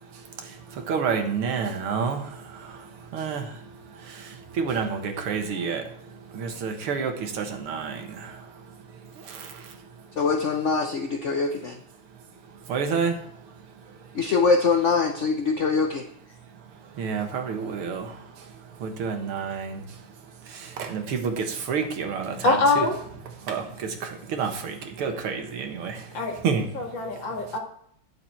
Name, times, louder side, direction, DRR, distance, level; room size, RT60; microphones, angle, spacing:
voice 1, 0.4-3.6 4.0-5.8 6.3-8.4 9.2-9.7 12.7-13.2 17.0-18.2 18.8-19.8 20.5-22.9 23.5-26.1 26.4-26.7, right 6 dB, 90° right, 5 dB, 2.2 m, -29 dB
voice 2, 10.2-11.8 14.1-16.0, left 4 dB, 75° left, 4 dB, 0.6 m, -23 dB
voice 3, 22.4-23.0 26.1-26.3 26.7-27.6, left 3 dB, 60° left, 1 dB, 2.6 m, -23 dB
9.8 x 7.1 x 4.4 m, 0.67 s
omnidirectional pair, 2.3 m